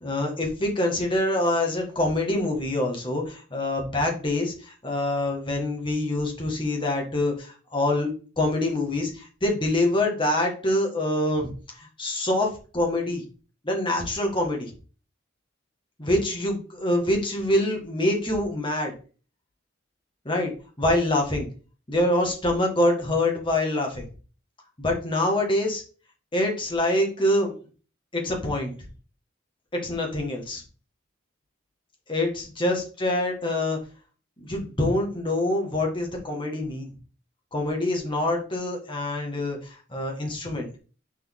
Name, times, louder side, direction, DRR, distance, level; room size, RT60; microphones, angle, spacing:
voice 1, 0.0-8.1 8.4-13.2 13.6-14.7 16.0-18.9 20.2-20.5 20.8-21.5 21.9-24.1 24.8-25.8 26.3-27.5 28.1-28.7 29.7-30.6 32.1-33.8 34.4-36.9 37.5-40.7, left 1 dB, 25° left, 1 dB, 1.6 m, -25 dB
6.1 x 4.2 x 3.7 m, 0.37 s
head